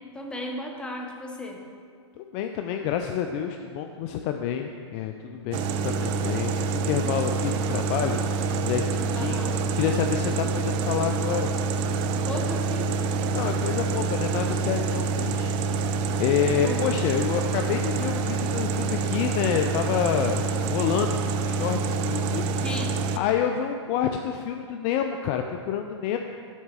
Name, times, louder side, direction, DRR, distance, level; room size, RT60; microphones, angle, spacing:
voice 1, 0.1-1.6 9.1-9.7 12.3-12.9 13.5-13.6 16.6-17.0 22.6-23.2, left 1 dB, 5° left, 1 dB, 0.9 m, -35 dB
voice 2, 2.2-8.2 8.5-9.5 9.8-11.5 13.3-21.2 21.5-22.5 23.2-26.2, left 8 dB, 35° left, 5 dB, 0.4 m, -28 dB
sound 1, 5.5-23.2, right 4 dB, 35° right, 0.4 m, -27 dB
7.2 x 4.5 x 6.7 m, 2.2 s
hypercardioid pair, 125°, 16 cm